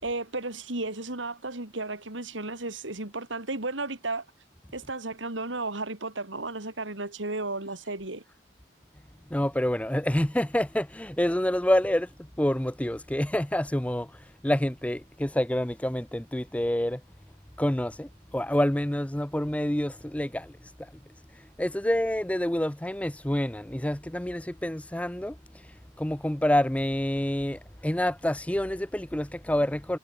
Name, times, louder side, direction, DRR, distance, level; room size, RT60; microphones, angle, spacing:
voice 1, 0.0-4.2 4.7-8.2, right 2 dB, 85° right, 4.0 m, -34 dB
voice 2, 9.3-17.0 17.6-20.9 21.3-25.4 25.6-30.0, left 1 dB, 5° left, 0.6 m, -28 dB
head